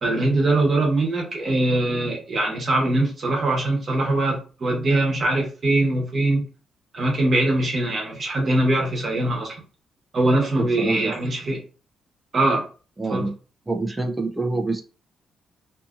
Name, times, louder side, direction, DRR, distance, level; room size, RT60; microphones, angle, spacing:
voice 1, 0.0-6.4 6.9-9.5 10.1-11.6 12.3-12.7 13.1-13.3, right 2 dB, 40° right, -1 dB, 1.0 m, -22 dB
voice 2, 10.6-11.1 13.0-13.3 13.7-14.8, right 3 dB, 15° right, 3 dB, 0.4 m, -26 dB
2.7 x 2.5 x 2.4 m, 0.37 s
cardioid pair, 140°, 0 cm